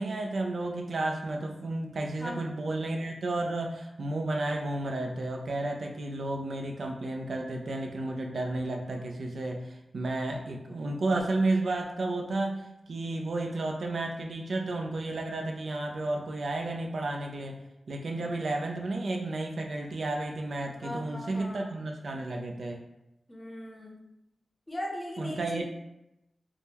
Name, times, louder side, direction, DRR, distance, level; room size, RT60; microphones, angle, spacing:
voice 1, 0.0-17.6 17.9-22.8 25.2-25.6, right 2 dB, 70° right, 2 dB, 0.4 m, -32 dB
voice 2, 2.2-2.5 18.2-18.4 20.8-21.9 23.3-24.0 24.7-25.6, equal, 20° left, 0 dB, 0.7 m, -39 dB
3.6 x 2.1 x 2.8 m, 0.88 s
wide cardioid pair, 85°, 0 cm